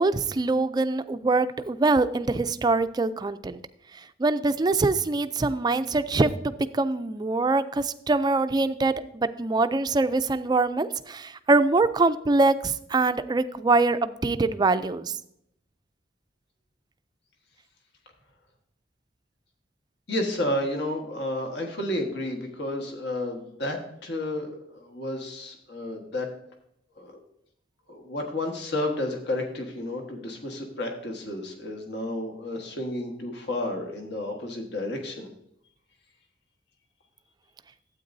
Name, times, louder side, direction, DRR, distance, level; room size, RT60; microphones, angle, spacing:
voice 1, 0.0-3.6 3.9-15.2, right 3 dB, 25° right, 12 dB, 0.4 m, -24 dB
voice 2, 20.1-26.3 27.0-27.2 27.9-35.3, left 1 dB, 65° left, 2 dB, 1.5 m, -31 dB
12.5 x 8.5 x 2.7 m, 0.75 s
head